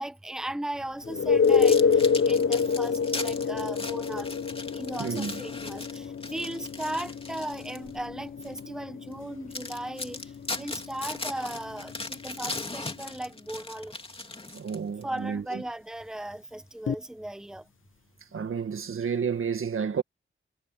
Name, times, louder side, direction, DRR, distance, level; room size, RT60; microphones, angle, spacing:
voice 1, 0.0-4.4 4.7-13.9 15.0-17.7, right 1 dB, 5° right, 0.9 m, -37 dB
sound 1, 1.0-12.6 16.9-17.0, left 5 dB, 70° left, 0.9 m, -27 dB
sound 2, 1.4-7.9 8.4-8.6 9.1-9.2 9.5-15.0, left 2 dB, 25° left, 2.7 m, -38 dB
voice 2, 5.0-5.4 14.5-15.6 18.3-20.0, right 6 dB, 75° right, 1.7 m, -31 dB
wide cardioid pair, 125°, 21 cm